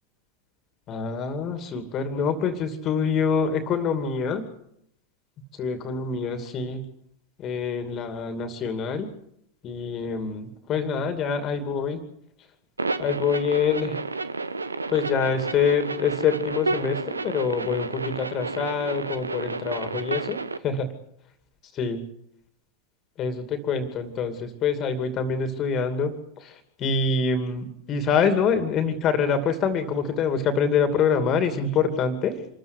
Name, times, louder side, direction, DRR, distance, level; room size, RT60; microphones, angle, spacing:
voice 1, 0.9-4.5 5.5-6.8 7.4-9.1 9.6-12.0 13.0-14.0 14.9-20.9 21.7-22.0 23.2-32.5, left 5 dB, 30° left, 8 dB, 2.6 m, -26 dB
sound 1, 12.8-20.6, right 3 dB, 80° right, 1.0 m, -31 dB
26.5 x 14.0 x 8.3 m, 0.74 s
figure-of-eight pair, 90°, 0 cm